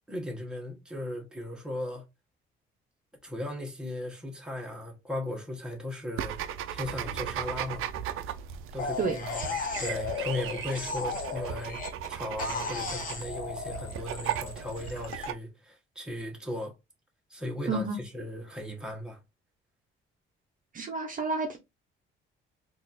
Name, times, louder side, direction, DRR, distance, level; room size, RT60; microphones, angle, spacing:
voice 1, 0.1-2.0 3.2-6.4 6.7-7.9 8.7-11.8 12.1-16.7 17.3-17.9 18.1-19.2, left 1 dB, 5° right, 1.1 m, -37 dB
sound 1, 6.2-15.3, right 10 dB, 80° right, 0.5 m, -37 dB
sound 2, 8.8-12.1 12.4-15.3, left 5 dB, 40° left, 1.0 m, -35 dB
voice 2, 17.7-18.0 20.7-21.6, right 4 dB, 40° right, 0.7 m, -30 dB
4.0 x 2.5 x 2.5 m
cardioid pair, 115°, 21 cm